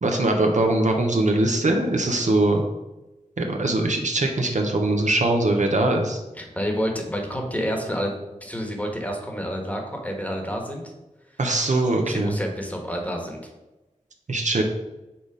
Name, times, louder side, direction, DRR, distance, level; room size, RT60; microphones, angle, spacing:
voice 1, 0.0-2.6 3.4-6.2 11.4-12.4 14.3-14.6, right 2 dB, 65° right, 2 dB, 0.9 m, -21 dB
voice 2, 6.4-8.1 8.4-10.8 12.0-13.4, equal, 10° left, 2 dB, 1.3 m, -29 dB
5.9 x 4.1 x 4.9 m, 1.0 s
wide cardioid pair, 65°, 13 cm